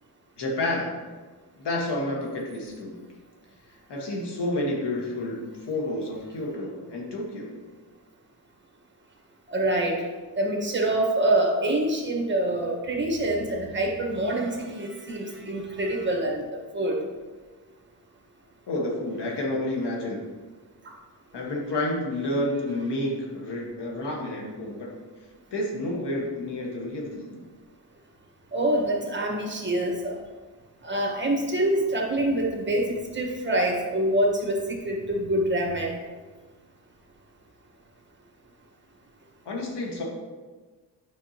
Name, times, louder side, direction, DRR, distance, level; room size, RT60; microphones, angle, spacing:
voice 1, 0.4-0.9 1.6-3.0 3.9-7.5 18.7-20.3 21.3-24.9 25.5-27.4 39.4-40.0, left 1 dB, 80° left, -1 dB, 1.6 m, -30 dB
voice 2, 9.5-10.0 10.4-17.0 20.8-20.9 28.5-30.2 30.8-36.0, right 1 dB, 25° right, 0 dB, 1.4 m, -26 dB
8.6 x 5.7 x 2.9 m, 1.3 s
cardioid pair, 95°, 40 cm